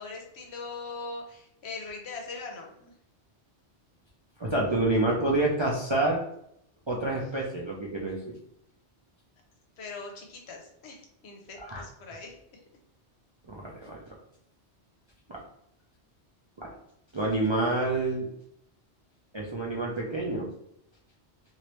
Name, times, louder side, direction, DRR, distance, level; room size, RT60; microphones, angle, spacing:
voice 1, 0.0-2.9 9.8-12.6, left 3 dB, 70° left, 1 dB, 0.9 m, -41 dB
voice 2, 4.4-6.2 6.9-8.3 11.6-11.8 13.5-14.0 15.3-15.4 16.6-16.7 17.1-18.3 19.3-20.5, right 2 dB, 40° right, -4 dB, 0.4 m, -28 dB
3.1 x 2.6 x 3.0 m, 0.74 s
omnidirectional pair, 1.1 m